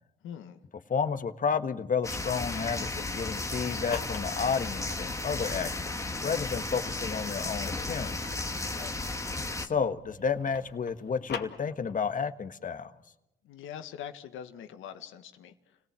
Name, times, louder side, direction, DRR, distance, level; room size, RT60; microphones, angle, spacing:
voice 1, 0.2-0.6 8.7-8.9 13.4-15.8, left 9 dB, 90° left, 8 dB, 1.7 m, -43 dB
voice 2, 0.9-8.2 9.6-12.9, left 6 dB, 40° left, 9 dB, 1.5 m, -31 dB
sound 1, 2.0-9.7, left 2 dB, 15° left, 1.5 m, -34 dB
sound 2, 3.7-5.6 6.1-9.9 10.2-12.2, left 6 dB, 60° left, 2.3 m, -44 dB
sound 3, 4.1-10.7, right 2 dB, 75° right, 4.4 m, -55 dB
29.5 x 18.0 x 7.5 m, 0.88 s
cardioid pair, 90°, 20 cm